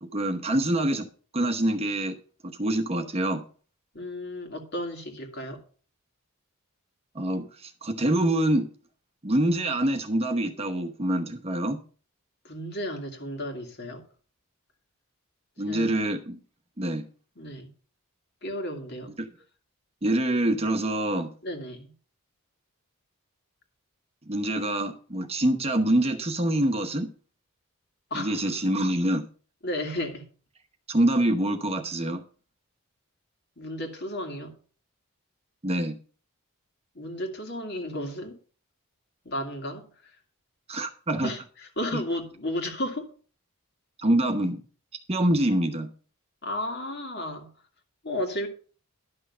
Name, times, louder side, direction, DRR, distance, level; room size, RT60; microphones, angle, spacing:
voice 1, 0.0-1.1 1.3-2.2 2.4-3.4 7.1-8.7 9.2-11.8 15.6-16.4 16.8-17.0 19.2-19.3 20.0-21.3 24.3-27.1 28.1-29.3 30.9-32.2 35.6-36.0 40.7-41.3 41.9-42.0 44.0-44.6 45.1-45.9, right 1 dB, 25° right, 1.0 m, -25 dB
voice 2, 3.9-5.6 12.4-14.0 15.7-15.9 17.4-17.7 18.4-19.1 21.4-21.9 28.1-28.6 29.6-30.3 33.6-34.5 36.9-38.4 39.2-39.9 41.2-43.1 46.4-47.5 48.0-48.5, left 1 dB, 50° left, 2.2 m, -33 dB
11.5 x 6.3 x 5.5 m
head